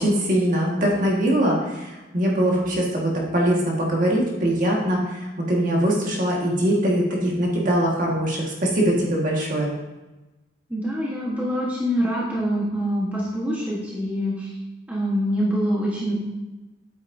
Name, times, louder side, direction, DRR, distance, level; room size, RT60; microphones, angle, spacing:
voice 1, 0.0-9.7, right 1 dB, 45° right, -2 dB, 1.5 m, -22 dB
voice 2, 10.7-14.5 14.9-16.2, equal, 10° right, -6 dB, 1.1 m, -25 dB
8.5 x 8.1 x 2.6 m, 1.1 s
head